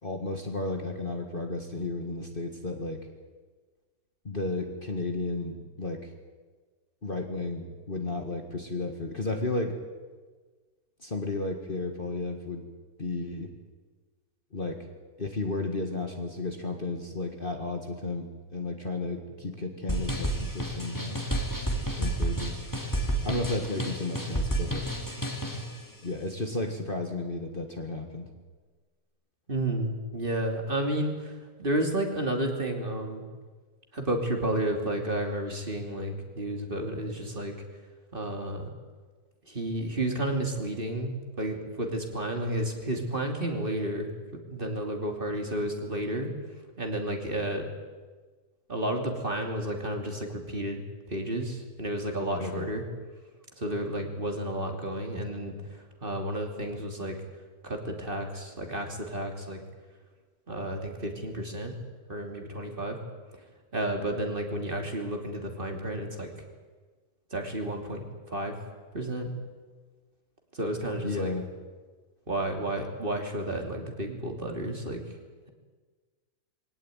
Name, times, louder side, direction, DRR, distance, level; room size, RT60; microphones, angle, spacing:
voice 1, 0.0-3.1 4.2-6.1 7.0-9.8 11.0-12.7 13.0-13.5 14.5-14.9 15.2-21.2 22.0-22.6 23.2-24.9 26.0-28.3 52.4-52.7 71.0-71.5, left 2 dB, 30° left, 4 dB, 1.9 m, -33 dB
sound 1, 19.9-25.7, right 1 dB, 10° left, 2.5 m, -30 dB
voice 2, 29.5-33.2 33.9-37.5 38.1-38.7 39.5-44.1 44.5-46.3 46.8-47.7 48.7-50.8 51.1-52.8 53.6-57.2 57.6-59.6 60.5-61.7 62.1-63.0 63.4-63.5 63.7-66.3 67.3-68.5 68.9-69.3 70.5-71.3 72.3-75.0, right 1 dB, 30° right, 3 dB, 3.0 m, -31 dB
22.5 x 18.0 x 9.2 m, 1.4 s
omnidirectional pair, 1.8 m